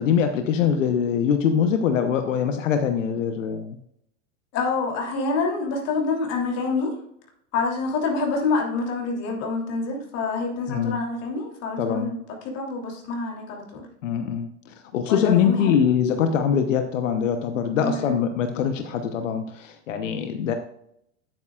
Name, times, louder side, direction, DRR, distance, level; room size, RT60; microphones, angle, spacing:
voice 1, 0.0-3.8 10.7-11.0 11.8-12.1 14.0-20.5, left 7 dB, 85° left, 7 dB, 1.0 m, -23 dB
voice 2, 4.5-7.0 7.5-13.9 15.1-15.8 17.8-18.1, left 4 dB, 40° left, 1 dB, 3.1 m, -27 dB
9.7 x 9.1 x 2.4 m, 0.74 s
supercardioid pair, 130°, 37 cm